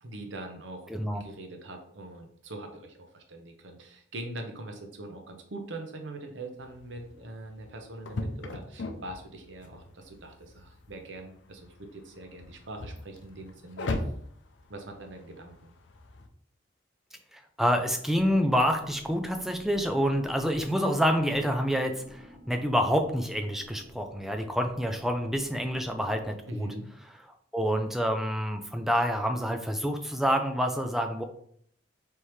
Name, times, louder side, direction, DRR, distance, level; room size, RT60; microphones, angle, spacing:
voice 1, 0.0-0.9 1.2-14.1 14.7-15.5 26.5-26.9, right 2 dB, 90° right, 4 dB, 0.8 m, -42 dB
voice 2, 0.9-1.2 17.3-26.7 27.5-31.2, equal, ahead, 4 dB, 0.4 m, -27 dB
sound 1, 6.6-16.3, left 2 dB, 75° left, 0.5 m, -40 dB
sound 2, 18.1-26.3, equal, 30° right, 1.9 m, -51 dB
4.5 x 3.5 x 3.1 m, 0.64 s
head